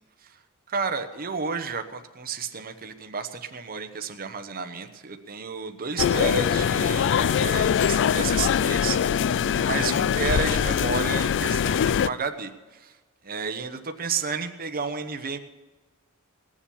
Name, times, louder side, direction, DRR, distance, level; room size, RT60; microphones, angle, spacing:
voice 1, 0.7-9.2 9.5-12.9 13.2-15.4, right 5 dB, 40° right, 8 dB, 0.9 m, -31 dB
sound 1, 6.0-12.1, left 8 dB, 55° left, 0.3 m, -23 dB
19.0 x 7.4 x 7.1 m, 1.2 s
head